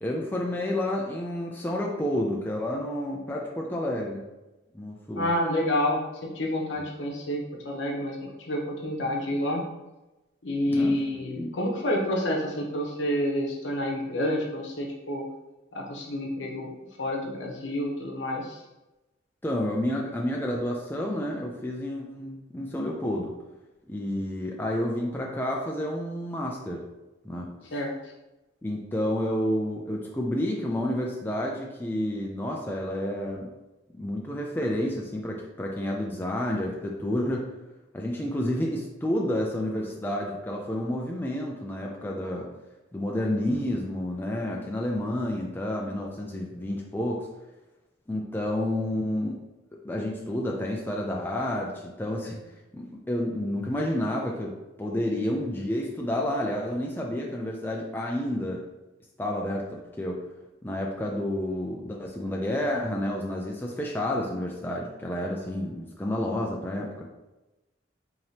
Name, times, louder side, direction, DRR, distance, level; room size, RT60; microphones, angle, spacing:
voice 1, 0.0-4.2 4.7-5.3 10.7-11.0 11.4-11.5 19.4-23.3 23.9-26.8 27.2-27.5 28.6-33.5 33.9-37.5 37.9-42.5 42.9-47.3 48.1-49.4 49.8-52.4 52.7-58.6 59.2-60.2 60.6-67.0, left 1 dB, 10° left, -1 dB, 0.4 m, -30 dB
voice 2, 5.2-9.6 10.4-15.2 15.7-16.7 17.0-18.6 27.7-27.9, left 1 dB, 75° left, -1 dB, 0.9 m, -29 dB
4.8 x 2.9 x 2.8 m, 1.0 s
head